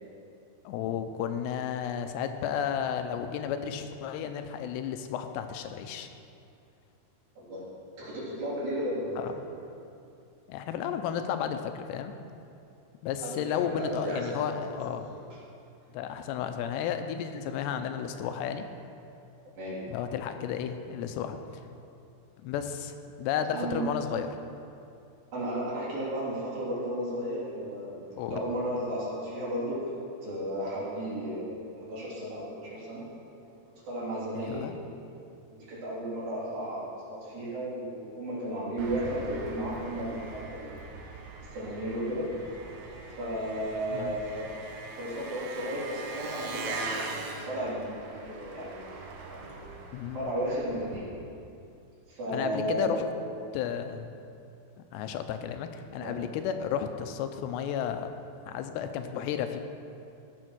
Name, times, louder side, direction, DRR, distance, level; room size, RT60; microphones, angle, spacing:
voice 1, 0.7-6.1 9.2-9.4 10.5-12.1 13.0-15.1 15.9-18.7 19.9-21.4 22.4-22.9 23.2-24.4 28.2-28.4 34.3-34.8 43.9-44.2 49.9-50.3 52.3-53.0 53.5-54.1 54.9-58.1 58.5-59.6, left 8 dB, 90° left, 7 dB, 2.9 m, -33 dB
voice 2, 8.0-9.2 13.2-14.5 19.6-19.8 23.5-23.8 25.3-29.9 30.2-33.0 33.9-34.6 35.7-40.8 41.5-42.3 43.2-44.5 45.0-49.9 50.1-51.1 52.1-53.0 56.0-56.3, right 1 dB, 55° right, -9 dB, 5.3 m, -34 dB
Engine, 38.8-51.0, right 3 dB, 75° right, 3.1 m, -41 dB
15.0 x 7.3 x 6.2 m, 2.6 s
omnidirectional pair, 4.9 m